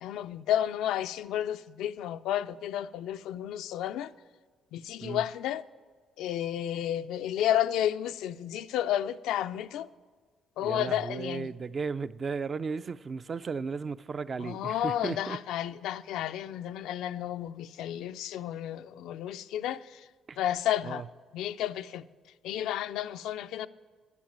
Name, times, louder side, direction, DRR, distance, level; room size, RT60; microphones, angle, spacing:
voice 1, 0.0-4.1 4.7-5.6 6.2-9.9 10.6-11.5 14.4-20.1 20.4-21.0 21.3-22.0 22.4-23.7, left 11 dB, 90° left, 0.3 m, -31 dB
voice 2, 10.6-15.4 20.3-20.4 20.8-21.1, right 5 dB, 40° right, 0.3 m, -35 dB
10.5 x 7.2 x 8.7 m
cardioid pair, 90°, 0 cm